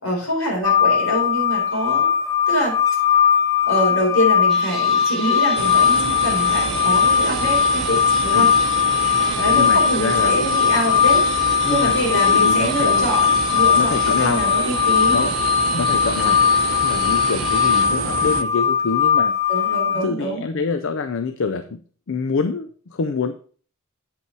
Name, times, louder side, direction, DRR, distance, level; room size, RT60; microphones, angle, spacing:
voice 1, 0.0-2.1 2.5-2.8 3.7-8.5 9.4-15.3 16.2-16.4 19.5-20.5, equal, 85° left, -3 dB, 4.3 m, -25 dB
sound 1, 0.6-20.0, left 8 dB, 15° left, 0.4 m, -19 dB
sound 2, 4.5-17.9, right 1 dB, ahead, 1.8 m, -35 dB
sound 3, 5.6-18.4, right 6 dB, 75° right, 0.6 m, -28 dB
voice 2, 9.5-10.4 11.6-11.9 12.3-13.1 13.7-14.4 15.1-15.3 15.7-16.3 16.8-19.3 19.9-21.8 22.1-23.3, left 4 dB, 65° left, 10 dB, 0.5 m, -25 dB
8.2 x 5.4 x 4.6 m, 0.44 s
head